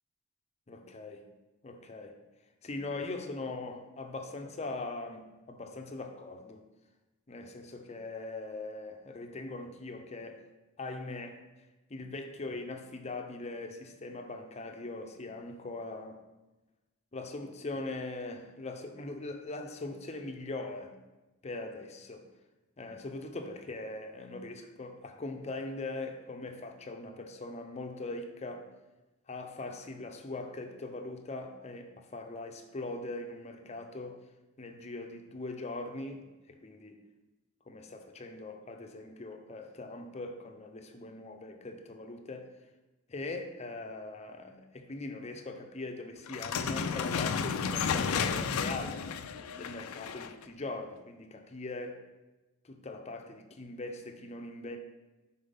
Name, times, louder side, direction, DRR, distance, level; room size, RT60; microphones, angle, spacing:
voice 1, 0.7-1.3 1.6-2.2 2.6-6.6 7.3-10.4 10.8-11.4 11.9-16.2 17.1-20.9 21.4-22.2 22.8-28.7 29.3-34.2 34.6-37.0 37.7-42.5 43.1-49.0 49.6-52.0 52.6-54.8, left 2 dB, 30° left, 5 dB, 0.5 m, -41 dB
sound 1, 46.3-50.4, left 6 dB, 80° left, 0.4 m, -32 dB
5.2 x 4.3 x 5.4 m, 1.1 s
head